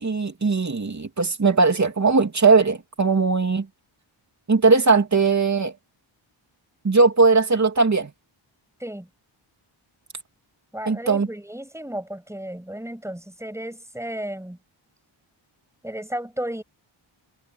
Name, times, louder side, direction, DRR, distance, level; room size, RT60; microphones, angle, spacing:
voice 1, 0.0-3.7 4.5-5.7 6.8-8.1 10.9-11.3, right 4 dB, 35° right, 3.0 m, -19 dB
voice 2, 10.7-14.6 15.8-16.6, right 1 dB, 5° right, 6.7 m, -33 dB
wide cardioid pair, 160°, 49 cm